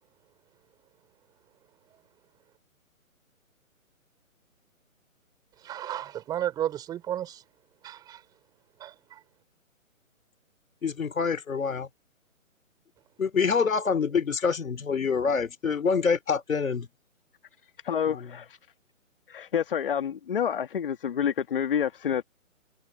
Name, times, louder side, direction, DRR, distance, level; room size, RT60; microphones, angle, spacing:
voice 1, 5.6-7.4 7.8-8.2 8.8-9.2, right 11 dB, 10° right, 4.9 m, -33 dB
voice 2, 10.8-11.9 13.2-16.9 18.1-18.3, left 5 dB, 70° left, 3.8 m, -26 dB
voice 3, 17.8-18.6 19.3-22.2, left 8 dB, 40° left, 1.7 m, -28 dB
hypercardioid pair, 165°, 42 cm